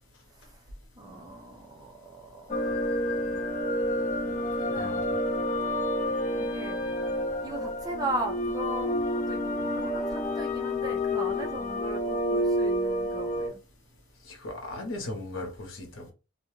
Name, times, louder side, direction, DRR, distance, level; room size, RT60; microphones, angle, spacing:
voice 1, 0.9-2.8 4.3-5.0 6.4-6.8 7.4-13.6, right 1 dB, 15° right, 0.5 m, -38 dB
sound 1, 2.5-13.5, left 1 dB, 35° left, 0.4 m, -29 dB
voice 2, 4.7-5.2 14.3-16.1, left 2 dB, 65° left, 0.8 m, -37 dB
2.4 x 2.2 x 3.0 m
head